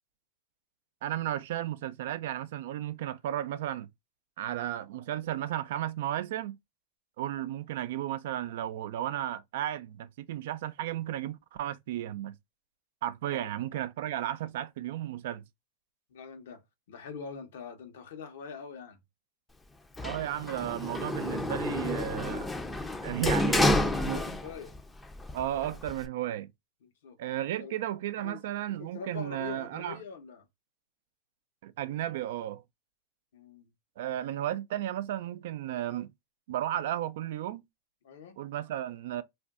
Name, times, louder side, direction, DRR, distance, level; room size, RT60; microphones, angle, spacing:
voice 1, 1.0-3.9 4.4-6.6 7.2-12.4 13.0-15.4 20.0-22.5 23.0-24.3 25.3-26.5 27.2-30.0 31.6-32.6 34.0-36.1 36.5-37.6 38.4-39.2, right 12 dB, 75° right, 0.4 m, -34 dB
voice 2, 16.1-16.6 16.9-19.0 24.0-24.7 26.8-27.2 27.6-27.8 28.2-28.4 28.8-30.5 33.3-33.7 38.0-38.4, left 6 dB, 85° left, 0.9 m, -44 dB
Sliding door, 20.0-24.8 25.1-26.1, left 1 dB, 10° left, 0.5 m, -29 dB
2.5 x 2.2 x 3.6 m
supercardioid pair, 125°, 0 cm